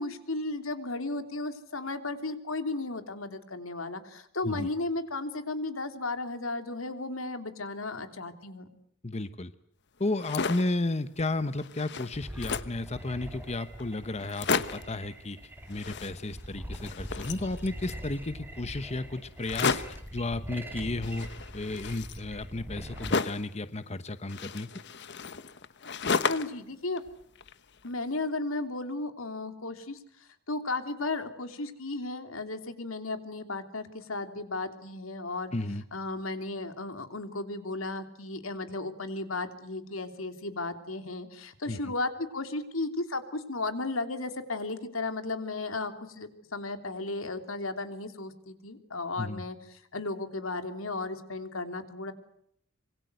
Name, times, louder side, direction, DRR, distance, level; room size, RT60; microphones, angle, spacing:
voice 1, 0.0-8.7 26.2-27.0 27.8-30.0 30.5-35.5 35.9-52.1, left 2 dB, 80° left, 8 dB, 3.2 m, -35 dB
voice 2, 9.0-9.5 10.0-15.4 15.7-21.3 21.5-24.7 35.5-35.8 41.7-41.9 49.2-49.4, left 2 dB, 30° left, 12 dB, 1.0 m, -33 dB
sound 1, 10.0-10.8 11.3-11.4 11.6-12.8 13.5-13.6 13.8-13.9 14.2-15.0 15.7-16.5 16.7-18.0 19.4-20.1 21.0-23.5 24.3-26.6 27.0-27.9, left 5 dB, 60° left, 1.2 m, -33 dB
sound 2, 12.1-23.2, equal, 10° right, 4.0 m, -43 dB
26.0 x 23.5 x 8.0 m, 0.71 s
head